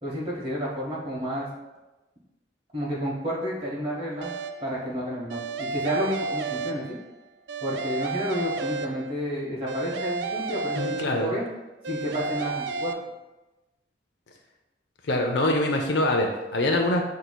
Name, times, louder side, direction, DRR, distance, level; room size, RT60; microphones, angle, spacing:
voice 1, 0.0-1.5 2.7-4.4 4.6-7.0 7.6-11.4 11.9-12.9, equal, 30° right, -5 dB, 1.0 m, -30 dB
sound 1, 4.2-4.8 5.3-7.2 7.5-9.3 9.7-11.5 11.8-12.9, right 4 dB, 75° right, 0.3 m, -32 dB
voice 2, 10.7-11.3 15.1-17.0, left 1 dB, 75° left, 2 dB, 0.5 m, -24 dB
7.8 x 2.7 x 2.2 m, 1.1 s
head